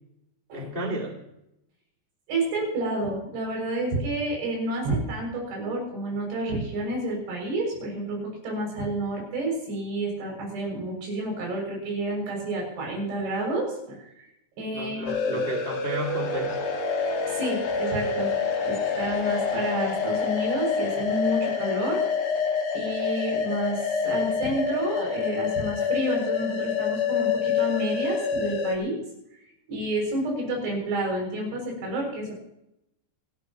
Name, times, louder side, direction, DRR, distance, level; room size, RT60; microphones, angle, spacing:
voice 1, 0.5-1.2 14.7-16.7, equal, 20° left, 1 dB, 1.6 m, -32 dB
voice 2, 2.3-14.3 14.6-15.4 17.3-18.3 18.6-22.0 22.7-29.0 29.7-32.3, right 1 dB, 90° right, -1 dB, 9.1 m, -30 dB
sound 1, 15.1-28.8, left 5 dB, 50° left, 2.3 m, -27 dB
28.5 x 13.0 x 3.0 m, 0.82 s
omnidirectional pair, 5.2 m